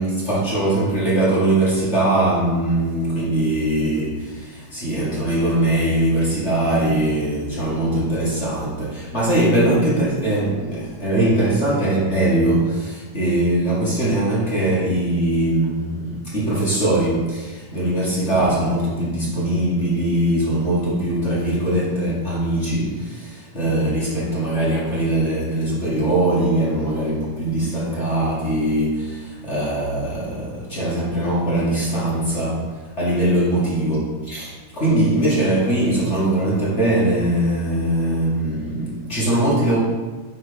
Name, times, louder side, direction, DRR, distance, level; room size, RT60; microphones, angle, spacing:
voice 1, 0.0-32.6 32.9-39.8, right 1 dB, 30° left, -7 dB, 1.6 m, -21 dB
9.9 x 4.0 x 5.0 m, 1.3 s
omnidirectional pair, 3.4 m